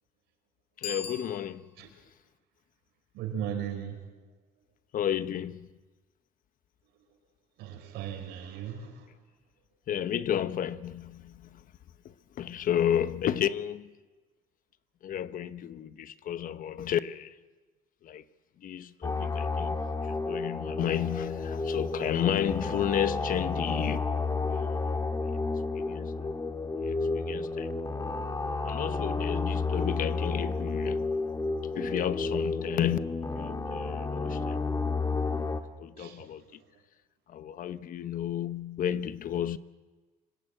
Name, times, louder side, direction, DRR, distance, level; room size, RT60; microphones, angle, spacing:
Bicycle bell, 0.7-2.0, left 4 dB, 80° left, 5.2 m, -41 dB
voice 1, 0.8-1.7 4.9-5.7 9.9-11.7 12.0-13.9 15.0-17.3 18.0-18.2 18.6-24.0 24.4-25.0 25.7-26.3 26.7-27.7 28.6-31.2 31.7-34.6 35.8-36.6 37.3-39.6, left 10 dB, 55° left, 1.0 m, -32 dB
voice 2, 3.1-4.1 7.6-9.1 36.0-36.4, right 9 dB, 90° right, 4.6 m, -37 dB
sound 1, 19.0-35.6, left 3 dB, 20° left, 1.7 m, -31 dB
25.5 x 15.5 x 8.9 m
cardioid pair, 110°, 17 cm